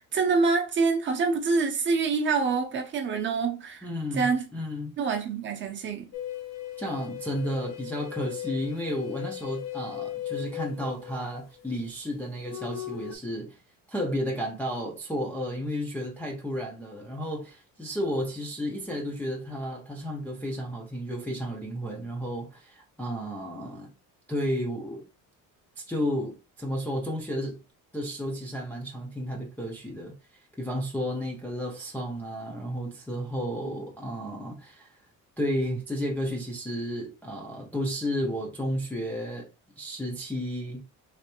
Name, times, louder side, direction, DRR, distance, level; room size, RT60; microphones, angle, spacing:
voice 1, 0.0-3.9 4.2-4.4 5.0-6.1, right 4 dB, 35° right, 0.6 m, -26 dB
voice 2, 3.8-5.0 6.8-13.6 13.9-23.9 24.3-25.1 25.8-27.6 27.9-34.9 35.4-39.5 39.8-40.9, equal, 5° left, 0.4 m, -32 dB
sound 1, 6.1-11.6 12.5-13.1, left 12 dB, 50° left, 0.6 m, -37 dB
3.3 x 3.0 x 2.9 m
cardioid pair, 175°, 34 cm